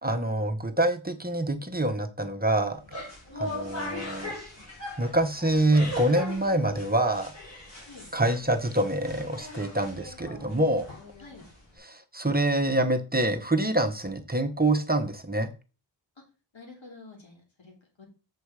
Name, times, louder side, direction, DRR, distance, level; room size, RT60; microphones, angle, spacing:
voice 1, 0.0-2.8 3.4-4.3 5.0-7.3 8.1-10.9 11.8-15.5, right 1 dB, 20° right, 5 dB, 1.1 m, -26 dB
sound 1, 2.7-11.8, left 1 dB, 35° left, 4.5 m, -40 dB
voice 2, 3.3-3.6 7.9-8.1 11.2-11.4 16.5-18.1, left 3 dB, 80° left, 0 dB, 3.1 m, -47 dB
8.3 x 4.6 x 4.8 m, 0.33 s
wide cardioid pair, 80°, 45 cm